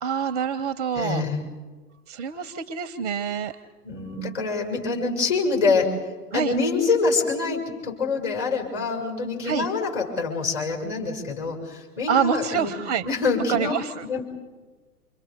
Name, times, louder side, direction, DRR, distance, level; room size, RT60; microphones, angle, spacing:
voice 1, 0.0-1.2 2.1-3.6 4.1-4.3 6.3-6.6 9.4-9.7 12.1-13.1 13.5-14.2, right 7 dB, 25° right, 14 dB, 0.6 m, -26 dB
voice 2, 0.9-1.4 3.8-5.9 6.3-12.7 13.0-13.7 14.1-14.2, left 4 dB, 35° left, 1 dB, 6.6 m, -25 dB
28.5 x 26.5 x 5.2 m, 1.3 s
figure-of-eight pair, 115°, 45 cm